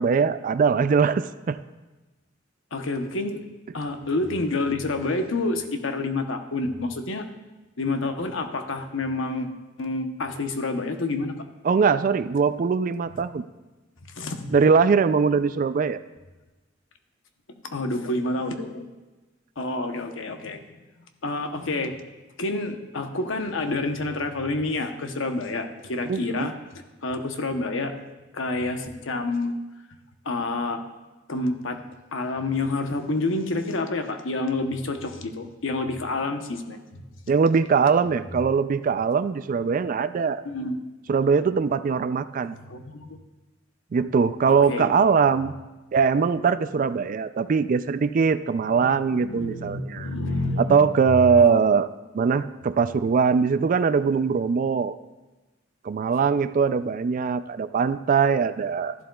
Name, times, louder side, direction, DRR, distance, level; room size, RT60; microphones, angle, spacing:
voice 1, 0.0-1.6 11.6-13.4 14.5-16.0 26.1-26.5 37.3-40.4 41.1-42.6 43.9-45.5 45.9-50.1 50.6-51.9 52.1-55.0 55.8-58.9, right 5 dB, 40° right, 13 dB, 0.3 m, -21 dB
voice 2, 2.7-3.4 3.7-7.3 7.8-11.3 13.1-13.2 14.0-14.6 17.7-18.9 19.6-20.6 21.2-21.9 22.4-26.5 27.0-27.9 28.3-29.6 30.2-30.8 31.3-31.8 32.1-37.0 38.0-38.4 40.4-40.8 42.7-43.2 44.5-44.9 48.7-48.9 49.2-50.9 51.4-51.6, left 2 dB, 75° left, 6 dB, 0.9 m, -28 dB
13.0 x 11.5 x 2.3 m, 1.1 s
head